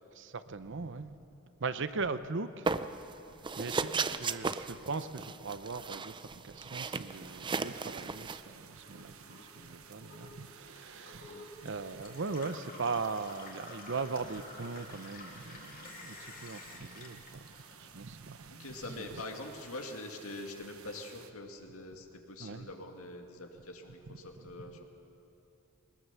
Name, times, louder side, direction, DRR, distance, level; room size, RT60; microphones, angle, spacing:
voice 1, 0.2-1.2 1.6-3.0 3.4-18.7 19.0-19.1 22.4-22.7, right 4 dB, 60° right, 0.7 m, -39 dB
sound 1, 2.7-3.1 3.4-8.4, right 4 dB, 20° right, 0.5 m, -35 dB
sound 2, 7.1-21.3, right 8 dB, 80° right, 1.1 m, -55 dB
Gurgling / Water tap faucet / Sink (filling or washing), 8.7-18.2 18.6-19.4, left 3 dB, 40° left, 2.6 m, -51 dB
voice 2, 18.5-24.8, left 2 dB, 85° left, 2.2 m, -44 dB
21.5 x 20.0 x 7.0 m
head